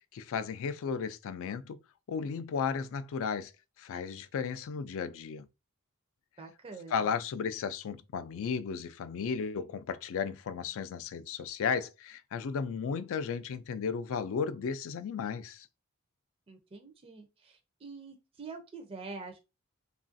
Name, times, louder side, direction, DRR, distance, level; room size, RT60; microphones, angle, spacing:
voice 1, 0.1-1.8 2.1-3.5 3.8-5.5 6.9-15.7, left 6 dB, 65° left, 0.3 m, -34 dB
voice 2, 6.4-7.1 16.5-19.4, right 4 dB, 25° right, 0.4 m, -46 dB
3.0 x 2.4 x 2.5 m
head